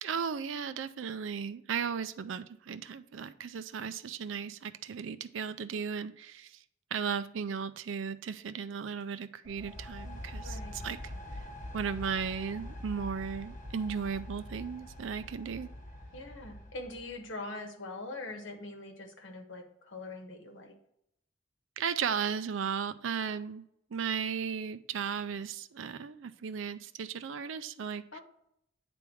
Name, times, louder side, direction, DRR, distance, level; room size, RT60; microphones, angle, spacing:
voice 1, 0.0-6.6 6.9-11.0 11.7-15.7 21.8-23.6 23.9-28.2, right 6 dB, 80° right, 12 dB, 0.4 m, -35 dB
sound 1, 9.4-17.2, left 1 dB, 40° left, 1.1 m, -44 dB
voice 2, 10.4-10.7 16.1-20.7 28.1-28.2, left 2 dB, 75° left, 5 dB, 1.2 m, -43 dB
9.2 x 3.5 x 4.6 m, 0.75 s
head